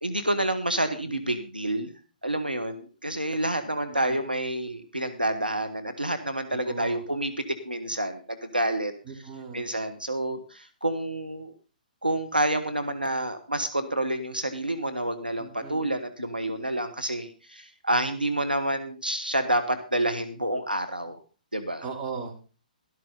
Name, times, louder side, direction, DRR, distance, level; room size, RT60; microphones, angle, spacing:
voice 1, 0.0-1.9 2.2-8.9 9.5-11.5 12.0-21.2 21.5-21.8, right 1 dB, 90° right, 7 dB, 1.3 m, -28 dB
voice 2, 3.9-4.2 6.5-7.0 9.0-9.7 15.4-15.9 21.8-22.4, right 5 dB, 25° right, -1 dB, 3.3 m, -38 dB
12.5 x 12.5 x 3.9 m, 0.35 s
figure-of-eight pair, 125°, 5 cm